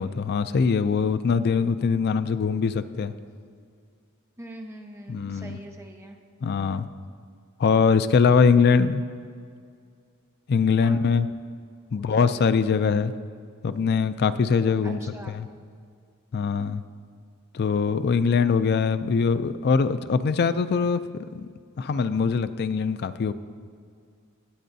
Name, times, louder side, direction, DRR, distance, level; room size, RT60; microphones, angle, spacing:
voice 1, 0.0-3.1 5.1-5.6 6.4-6.9 7.6-9.0 10.5-11.3 11.9-13.1 13.6-15.0 15.3-15.5 16.3-16.8 17.5-21.0 21.4-21.5 21.8-23.3, left 5 dB, 50° left, 12 dB, 0.4 m, -22 dB
voice 2, 4.4-6.2 10.8-11.0 11.9-12.5 14.8-15.4, right 1 dB, 15° right, 2 dB, 0.8 m, -43 dB
19.0 x 7.6 x 2.7 m, 2.2 s
head